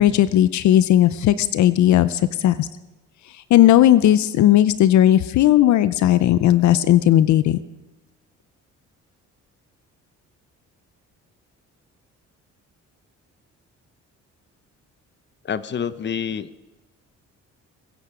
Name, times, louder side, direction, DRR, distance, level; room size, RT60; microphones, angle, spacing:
voice 1, 0.0-2.7 3.5-7.6, left 12 dB, 70° left, 15 dB, 0.6 m, -16 dB
voice 2, 15.4-16.5, left 7 dB, 35° left, 15 dB, 0.7 m, -27 dB
22.0 x 10.0 x 5.0 m, 1.1 s
cardioid pair, 90°, 30 cm